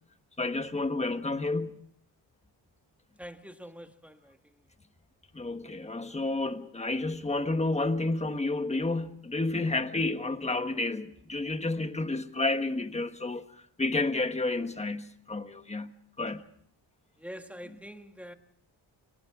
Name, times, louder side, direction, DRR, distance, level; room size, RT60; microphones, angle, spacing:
voice 1, 0.4-1.8 5.3-13.4 13.8-16.4 17.7-17.8, left 2 dB, 15° left, 1.3 m, -30 dB
voice 2, 3.2-4.4 17.2-18.3, equal, 5° right, 1.5 m, -45 dB
29.5 x 23.5 x 3.7 m
wide cardioid pair, 135°, 42 cm